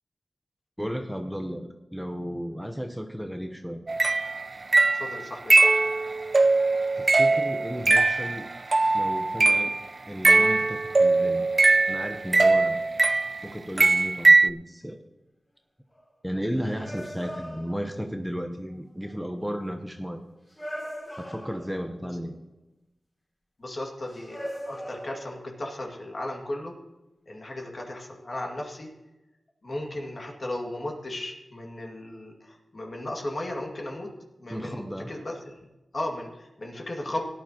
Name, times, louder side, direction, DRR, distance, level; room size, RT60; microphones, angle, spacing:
voice 1, 0.8-3.8 7.0-8.5 8.9-9.8 10.1-11.5 11.9-12.8 13.4-15.0 16.2-20.2 21.2-22.3 34.5-35.1, equal, ahead, 5 dB, 0.9 m, -34 dB
sound 1, 3.9-9.8 10.2-13.5 13.8-14.5, right 3 dB, 45° right, 0.3 m, -21 dB
voice 2, 4.9-5.8 23.6-26.7 27.3-28.9 29.6-34.1 34.4-35.6 35.9-37.2, left 1 dB, 50° left, 0 dB, 2.2 m, -35 dB
sound 2, 11.4-11.7 15.9-16.0 16.8-18.2 19.0-19.1 20.5-22.0 24.1-25.5, equal, 25° left, 3.5 m, -39 dB
17.0 x 10.0 x 3.0 m, 1.0 s
cardioid pair, 55°, 0 cm